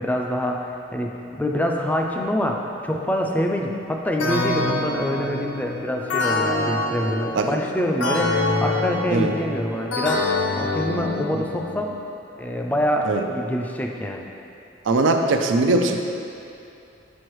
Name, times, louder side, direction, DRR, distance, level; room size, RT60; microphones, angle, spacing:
voice 1, 0.0-12.0 12.4-14.3, left 1 dB, 10° left, 1 dB, 0.3 m, -25 dB
sound 1, 4.2-11.8, left 2 dB, 70° left, 0.6 m, -26 dB
voice 2, 14.9-16.0, right 2 dB, 80° right, 5 dB, 0.4 m, -20 dB
6.3 x 5.2 x 3.1 m, 2.7 s
head